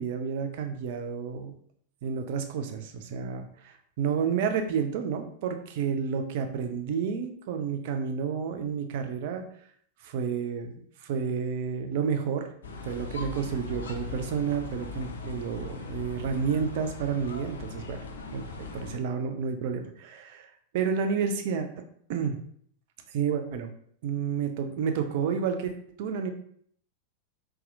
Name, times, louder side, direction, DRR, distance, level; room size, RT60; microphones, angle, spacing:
voice 1, 0.0-1.6 2.0-9.4 10.1-10.7 11.0-12.5 12.8-18.0 18.3-20.5 20.7-21.7 22.1-22.4 23.1-23.7 24.0-25.7 26.0-26.3, right 6 dB, 50° right, 6 dB, 0.4 m, -30 dB
sound 1, 12.6-19.0, left 4 dB, 65° left, 0.4 m, -39 dB
4.0 x 2.3 x 2.6 m, 0.62 s
figure-of-eight pair, 90°, 0 cm